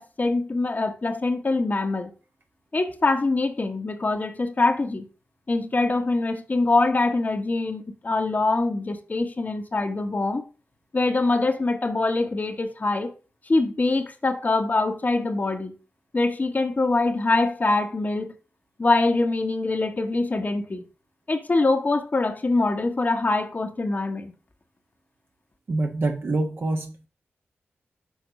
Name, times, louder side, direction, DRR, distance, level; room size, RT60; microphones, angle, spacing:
voice 1, 0.0-2.1 2.7-5.1 5.5-10.4 10.9-13.1 13.5-15.7 16.1-18.3 18.8-20.8 21.3-24.3, left 3 dB, 40° left, 1.1 m, -24 dB
voice 2, 25.7-27.0, right 2 dB, 60° right, 1.3 m, -25 dB
6.5 x 4.2 x 5.2 m
cardioid pair, 55°, 4 cm